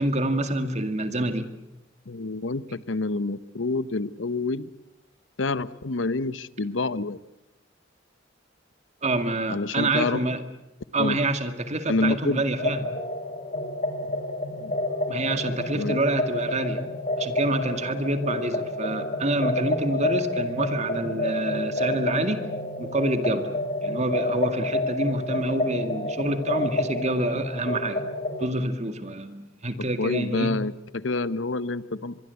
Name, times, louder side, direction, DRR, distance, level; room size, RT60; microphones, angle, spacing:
voice 1, 0.0-1.5 9.0-10.4 10.9-12.9 15.1-16.8 17.2-22.4 22.8-23.5 23.8-28.0 28.4-30.5, right 2 dB, 40° right, 8 dB, 2.1 m, -27 dB
voice 2, 2.1-4.7 5.4-7.2 9.5-10.2 11.0-11.2 11.9-12.4 14.5-14.7 15.7-16.0 30.0-32.2, left 3 dB, 85° left, 16 dB, 0.9 m, -27 dB
sound 1, 12.6-28.5, left 1 dB, 40° left, 2.4 m, -29 dB
24.0 x 23.0 x 8.3 m, 0.95 s
head